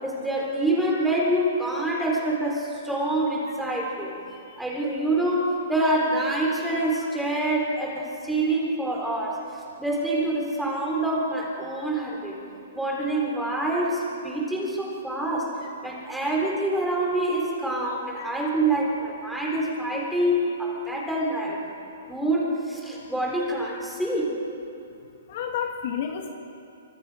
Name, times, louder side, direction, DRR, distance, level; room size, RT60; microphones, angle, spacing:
voice 1, 0.0-4.2 4.6-9.4 9.8-12.4 12.7-15.6 15.8-21.6 22.0-24.4, right 1 dB, ahead, -3 dB, 4.3 m, -26 dB
voice 2, 25.3-26.3, left 8 dB, 45° left, 3 dB, 1.9 m, -31 dB
26.0 x 25.5 x 5.2 m, 2.6 s
hypercardioid pair, 165°, 0 cm